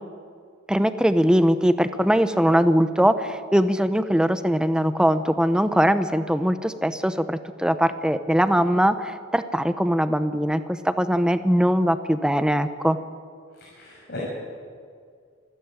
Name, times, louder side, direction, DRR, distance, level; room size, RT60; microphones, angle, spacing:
voice 1, 0.7-13.0, equal, 5° right, 11 dB, 0.9 m, -21 dB
voice 2, 13.6-14.2, left 2 dB, 55° left, -5 dB, 6.5 m, -40 dB
27.0 x 13.0 x 9.1 m, 2.1 s
head